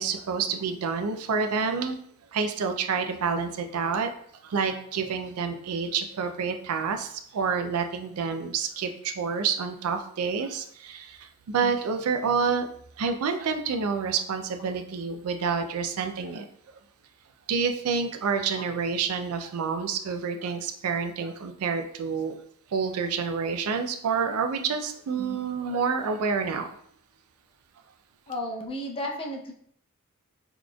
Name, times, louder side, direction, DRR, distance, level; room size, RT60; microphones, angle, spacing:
voice 1, 0.0-2.0 2.3-4.1 4.4-12.7 13.0-16.5 17.5-22.3 22.7-26.8, right 5 dB, 85° right, 6 dB, 0.4 m, -28 dB
voice 2, 28.3-29.5, left 1 dB, 25° left, -1 dB, 0.6 m, -33 dB
4.0 x 3.0 x 2.2 m, 0.65 s
head